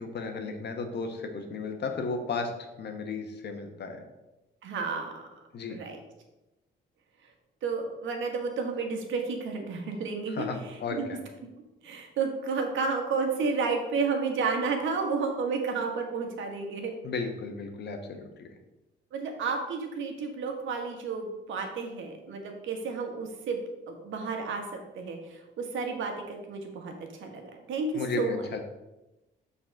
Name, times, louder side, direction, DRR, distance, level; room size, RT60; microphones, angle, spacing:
voice 1, 0.0-4.0 5.5-5.8 10.3-11.2 17.0-18.5 27.9-28.6, left 4 dB, 60° left, 5 dB, 1.3 m, -34 dB
voice 2, 4.6-5.3 5.7-6.0 7.6-10.5 10.9-11.1 11.8-16.9 19.1-23.6 23.9-24.6 24.9-27.9 28.2-28.4, right 4 dB, 75° right, 3 dB, 1.6 m, -31 dB
6.2 x 4.2 x 6.5 m, 1.0 s
cardioid pair, 90°, 20 cm